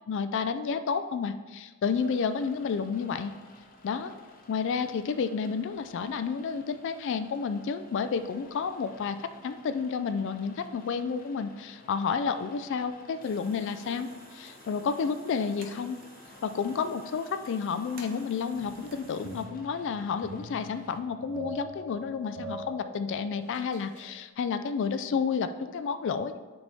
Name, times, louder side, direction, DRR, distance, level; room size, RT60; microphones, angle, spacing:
voice 1, 0.1-3.3 3.8-4.1 4.5-16.0 16.4-26.4, left 5 dB, 55° left, 11 dB, 0.3 m, -31 dB
Rain, 2.0-21.0, left 2 dB, 40° left, 0.7 m, -54 dB
sound 1, 13.2-19.5, right 2 dB, 40° right, 0.9 m, -52 dB
sound 2, 18.5-24.2, right 1 dB, 75° right, 1.2 m, -44 dB
8.8 x 4.1 x 3.5 m, 1.3 s
head